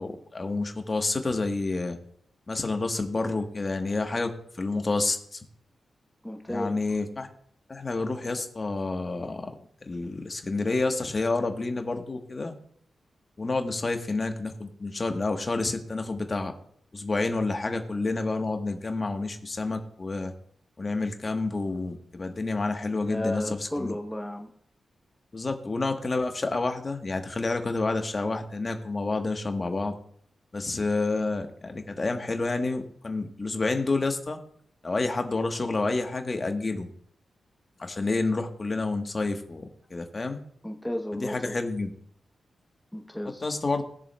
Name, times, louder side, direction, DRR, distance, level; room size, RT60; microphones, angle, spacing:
voice 1, 0.0-2.0 2.5-4.3 4.6-5.4 6.5-7.3 7.7-9.5 9.9-12.5 13.4-16.5 16.9-20.3 20.8-24.0 25.3-29.9 30.5-34.4 34.8-36.9 37.8-39.6 39.9-40.4 41.1-41.9 43.4-43.8, left 3 dB, 35° left, 5 dB, 1.2 m, -29 dB
voice 2, 6.2-6.8 23.1-24.5 40.6-41.6 42.9-43.5, left 1 dB, 5° left, 2 dB, 0.9 m, -33 dB
20.0 x 7.0 x 2.3 m, 0.65 s
cardioid pair, 75°, 0 cm